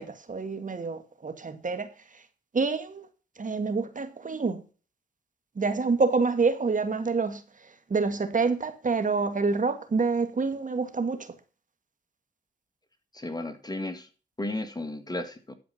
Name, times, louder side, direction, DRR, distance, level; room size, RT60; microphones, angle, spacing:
voice 1, 0.0-1.9 2.5-3.1 3.4-4.6 5.6-7.4 7.9-11.2, right 4 dB, 45° right, 2.0 m, -27 dB
voice 2, 13.1-14.1 14.4-15.5, left 2 dB, 20° left, 1.9 m, -34 dB
12.0 x 5.0 x 5.7 m
supercardioid pair, 55°, 19 cm